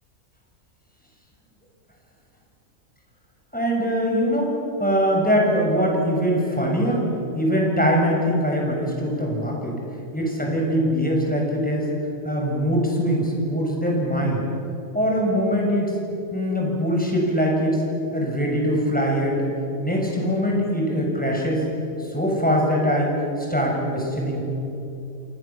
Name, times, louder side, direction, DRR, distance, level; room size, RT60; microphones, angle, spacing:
voice 1, 3.5-4.5 4.8-7.1 7.3-9.7 10.1-11.9 12.2-14.4 14.9-15.9 16.3-17.8 18.1-19.5 19.8-21.6 22.1-24.4, equal, 5° left, -1 dB, 6.7 m, -22 dB
28.0 x 28.0 x 7.3 m, 2.8 s
omnidirectional pair, 1.5 m